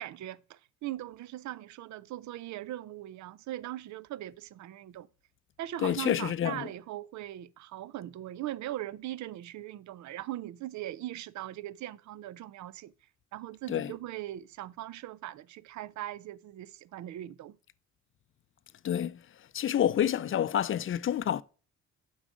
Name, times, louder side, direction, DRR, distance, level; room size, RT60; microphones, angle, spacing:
voice 1, 0.0-5.1 5.6-12.9 13.3-17.6, right 14 dB, 70° right, 0.5 m, -40 dB
voice 2, 5.8-6.7 13.7-13.9 18.8-19.2 19.5-21.4, left 10 dB, 45° left, 0.5 m, -28 dB
7.3 x 5.3 x 4.9 m
cardioid pair, 90°, 30 cm